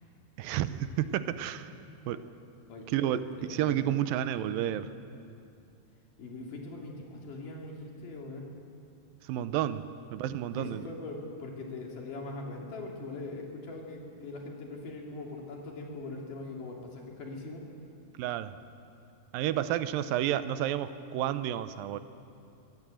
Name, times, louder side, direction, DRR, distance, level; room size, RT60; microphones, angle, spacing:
voice 1, 0.4-1.7 2.1-2.2 2.9-4.9 9.2-10.9 18.1-18.6 19.3-22.0, right 11 dB, 85° right, 12 dB, 2.5 m, -31 dB
voice 2, 2.7-4.0 6.2-8.5 10.5-17.6, left 2 dB, 70° left, 0 dB, 4.2 m, -41 dB
23.5 x 16.5 x 7.8 m, 2.5 s
omnidirectional pair, 4.0 m